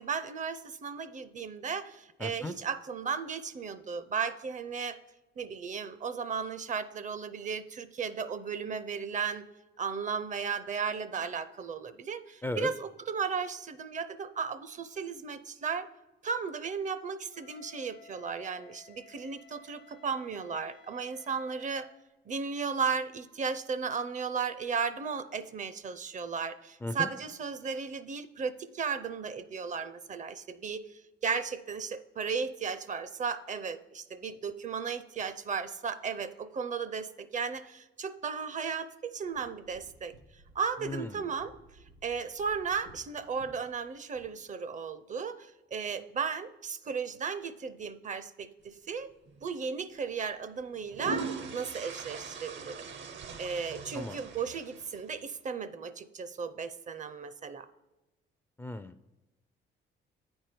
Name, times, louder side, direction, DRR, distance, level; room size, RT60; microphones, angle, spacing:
voice 1, 0.0-5.0 5.4-9.5 9.8-15.9 16.2-21.9 22.3-30.8 31.2-40.1 40.5-41.5 42.0-49.1 49.4-52.9 53.4-57.7, right 6 dB, 40° right, 13 dB, 0.5 m, -35 dB
voice 2, 2.2-2.5 12.4-12.7 26.8-27.1 40.8-41.3 53.9-54.2 58.6-58.9, left 2 dB, 10° left, 10 dB, 0.4 m, -36 dB
Wind instrument woodwind instrument, 17.3-21.9, left 6 dB, 85° left, 0.9 m, -57 dB
sound 1, 39.2-44.2, right 2 dB, 90° right, 2.3 m, -58 dB
sound 2, 49.3-49.5 50.6-55.2, right 4 dB, 70° right, 0.8 m, -41 dB
8.9 x 4.4 x 5.0 m, 1.0 s
cardioid pair, 90°, 20 cm